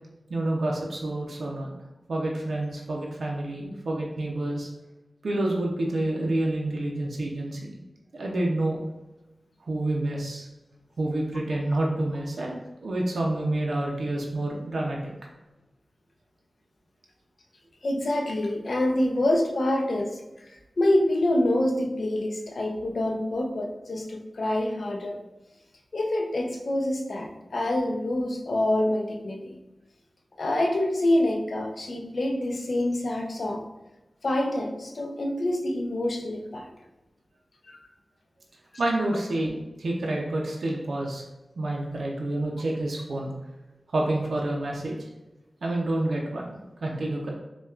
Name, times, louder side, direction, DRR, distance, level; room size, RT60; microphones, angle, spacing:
voice 1, 0.3-1.7 2.1-4.7 5.2-7.8 8.1-8.8 9.7-10.5 11.0-15.0 38.8-41.2 41.6-43.3 43.9-45.0 45.6-47.3, right 1 dB, 90° right, -2 dB, 0.5 m, -28 dB
voice 2, 17.8-20.2 20.8-25.2 25.9-29.5 30.4-33.6 34.2-36.7, left 1 dB, 70° left, 2 dB, 0.5 m, -26 dB
5.5 x 2.2 x 2.4 m, 1.0 s
wide cardioid pair, 85°, 0 cm